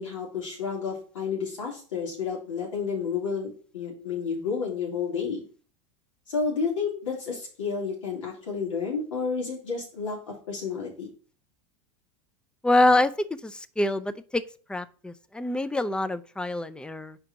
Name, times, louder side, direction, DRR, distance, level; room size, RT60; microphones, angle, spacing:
voice 1, 0.0-5.4 6.3-11.1, left 5 dB, 90° left, -3 dB, 3.2 m, -31 dB
voice 2, 12.6-13.1 13.4-14.4 14.7-17.2, left 2 dB, 5° left, 14 dB, 0.4 m, -25 dB
5.0 x 4.4 x 5.1 m, 0.40 s
hypercardioid pair, 100°, 16 cm